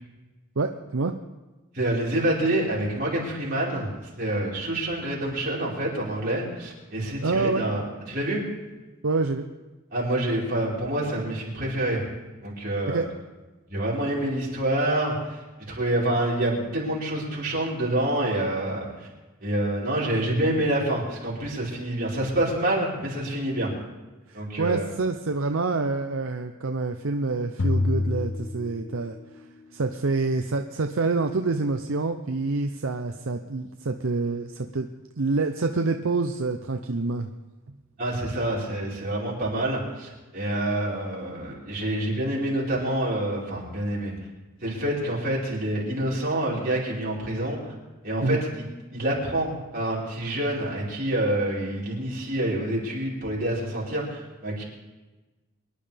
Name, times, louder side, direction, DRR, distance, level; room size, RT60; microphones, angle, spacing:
voice 1, 0.6-1.1 7.2-7.6 9.0-9.5 12.9-13.1 24.3-29.2 29.7-34.9 35.2-37.3 48.2-48.4, right 3 dB, 65° right, 6 dB, 0.6 m, -27 dB
voice 2, 1.7-8.4 9.9-12.0 12.4-13.0 13.7-15.4 15.7-19.1 19.4-23.7 24.3-24.9 38.0-44.1 44.6-47.7 48.0-54.6, right 1 dB, 40° right, -6 dB, 4.7 m, -27 dB
sound 1, 27.6-29.4, left 2 dB, 55° left, 0.5 m, -27 dB
24.0 x 11.0 x 3.5 m, 1.2 s
head